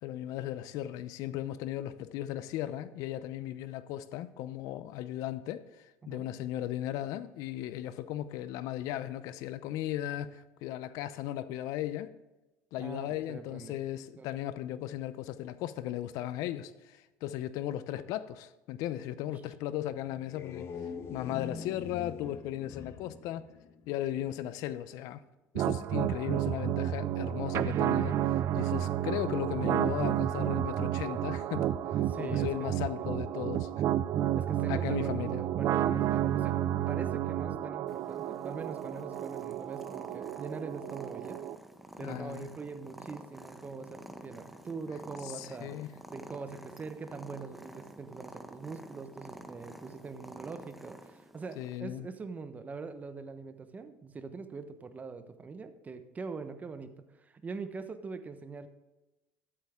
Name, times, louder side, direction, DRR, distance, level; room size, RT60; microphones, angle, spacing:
voice 1, 0.0-12.1 12.7-20.7 21.1-23.5 23.9-25.2 25.5-33.8 34.7-35.4 42.0-42.5 45.2-45.9 51.6-52.1, left 13 dB, 70° left, 0.7 m, -36 dB
voice 2, 12.8-13.8 14.2-14.3 19.3-19.4 25.8-25.9 32.1-32.5 34.4-35.0 35.2-36.6 36.9-41.4 42.0-45.8 46.1-58.7, right 4 dB, 25° right, 1.1 m, -43 dB
sound 1, 20.1-24.3, left 5 dB, 45° left, 1.2 m, -44 dB
sound 2, 25.5-41.5, right 11 dB, 50° right, 0.5 m, -31 dB
Purr, 37.9-51.8, right 1 dB, ahead, 1.0 m, -50 dB
13.0 x 8.7 x 3.7 m
supercardioid pair, 100°, 6 cm